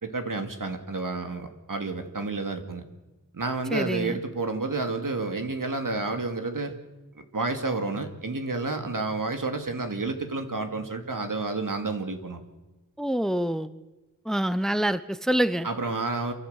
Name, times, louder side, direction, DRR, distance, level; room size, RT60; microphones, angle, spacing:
voice 1, 0.0-2.8 3.3-6.7 7.2-12.4 15.6-16.3, right 3 dB, 75° right, 6 dB, 2.3 m, -30 dB
voice 2, 3.7-4.2 13.0-13.7 14.3-15.7, equal, ahead, 14 dB, 0.7 m, -26 dB
28.5 x 12.0 x 8.1 m, 1.1 s
wide cardioid pair, 55°, 33 cm